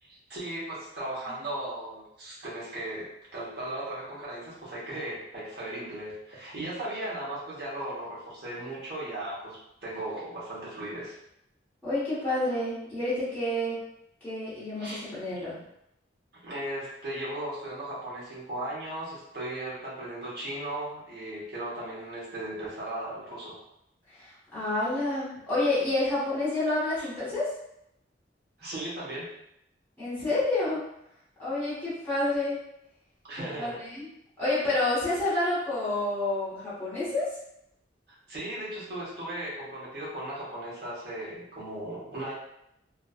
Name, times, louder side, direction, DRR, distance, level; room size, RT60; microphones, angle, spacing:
voice 1, 0.0-11.2 14.8-15.4 16.4-23.6 27.0-27.1 28.6-29.3 33.2-33.8 38.1-42.3, right 1 dB, 60° right, -7 dB, 1.0 m, -37 dB
voice 2, 11.8-13.8 14.2-15.6 24.1-27.5 30.0-30.8 31.4-32.6 33.6-34.1 34.4-37.3, left 2 dB, 10° left, -12 dB, 1.1 m, -29 dB
2.5 x 2.3 x 2.3 m, 0.80 s
head